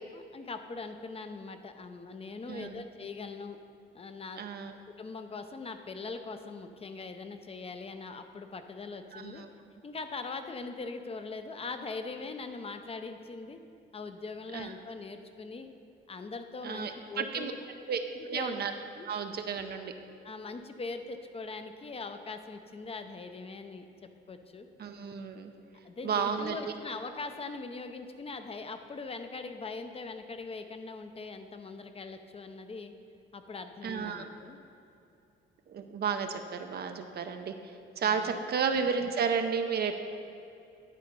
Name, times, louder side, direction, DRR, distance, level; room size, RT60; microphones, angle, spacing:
voice 1, 0.1-3.6 3.9-4.4 5.0-9.4 9.8-13.6 13.9-15.7 16.1-17.6 18.1-18.6 19.0-19.1 20.2-24.7 25.8-32.9 33.3-34.6 38.0-38.4, left 4 dB, 30° left, 7 dB, 0.6 m, -41 dB
voice 2, 2.5-2.8 4.4-4.7 9.1-9.5 14.5-14.7 16.6-17.5 17.9-18.7 19.1-19.9 24.8-25.5 26.0-26.6 33.8-34.2 35.7-37.5 38.0-40.0, right 6 dB, 55° right, 6 dB, 0.6 m, -32 dB
10.5 x 4.1 x 5.4 m, 2.6 s
cardioid pair, 90°, 20 cm